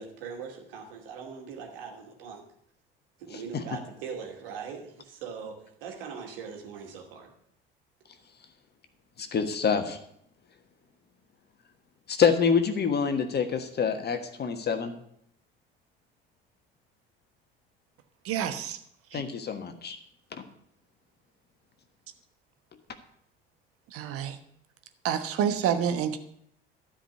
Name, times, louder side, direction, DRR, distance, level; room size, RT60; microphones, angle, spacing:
voice 1, 0.0-2.4 3.2-7.3, right 6 dB, 65° right, 1 dB, 2.6 m, -41 dB
voice 2, 3.3-3.6 9.2-10.0 12.1-15.0 19.1-20.0 20.3-20.4, left 6 dB, 35° left, 7 dB, 1.4 m, -26 dB
voice 3, 18.2-18.8 19.1-19.2 23.9-24.4 25.0-26.2, right 8 dB, 50° right, 8 dB, 1.2 m, -28 dB
13.0 x 5.1 x 8.4 m, 0.71 s
figure-of-eight pair, 60°, 29 cm